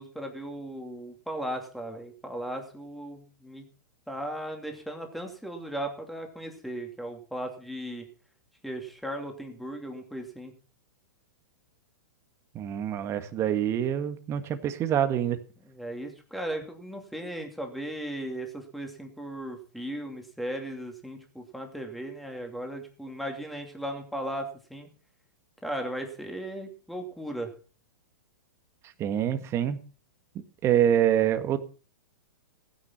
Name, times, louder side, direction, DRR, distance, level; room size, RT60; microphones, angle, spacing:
voice 1, 0.0-3.6 4.1-8.0 8.6-10.5 15.7-24.9 25.6-27.5, right 1 dB, ahead, 3 dB, 2.8 m, -37 dB
voice 2, 12.5-15.4 29.0-29.8 30.6-31.6, right 10 dB, 25° right, 9 dB, 1.7 m, -25 dB
15.5 x 10.0 x 5.8 m, 0.38 s
hypercardioid pair, 135°, 10 cm